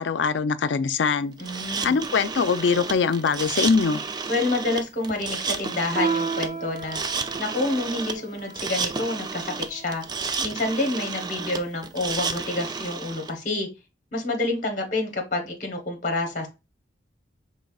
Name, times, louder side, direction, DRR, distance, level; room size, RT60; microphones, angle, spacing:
voice 1, 0.0-1.3 1.8-4.0, left 5 dB, 85° left, 0.4 m, -22 dB
voice 2, 1.4-2.0 4.3-7.0 7.4-10.0 10.4-13.7 14.1-16.5, left 2 dB, 45° left, 1.0 m, -28 dB
sound 1, 1.4-13.3, right 5 dB, 25° right, 0.3 m, -31 dB
Piano, 6.0-10.9, right 4 dB, 40° right, 0.8 m, -33 dB
5.3 x 3.3 x 2.3 m
head